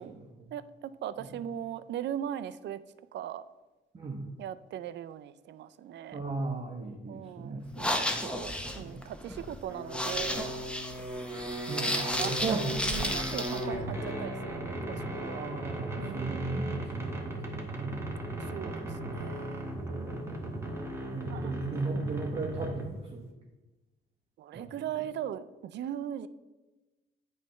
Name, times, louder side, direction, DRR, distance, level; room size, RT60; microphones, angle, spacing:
voice 1, 0.0-0.5 1.2-1.3 3.9-4.3 6.1-7.8 8.8-9.0 11.7-13.1 15.3-18.4 19.9-20.5 21.1-23.3 24.5-24.7, right 3 dB, 30° right, 0 dB, 0.9 m, -36 dB
voice 2, 0.5-2.8 3.1-3.4 4.4-6.2 7.1-8.0 8.2-10.5 11.9-12.6 12.8-15.5 16.0-16.6 18.5-19.7 21.3-21.5 21.9-22.0 24.4-26.3, right 10 dB, 65° right, 14 dB, 0.4 m, -39 dB
sound 1, 7.7-13.6, left 1 dB, 5° left, 0.7 m, -33 dB
sound 2, 9.7-23.1, right 1 dB, 15° right, 1.2 m, -37 dB
8.3 x 3.2 x 5.6 m, 1.1 s
cardioid pair, 90°, 20 cm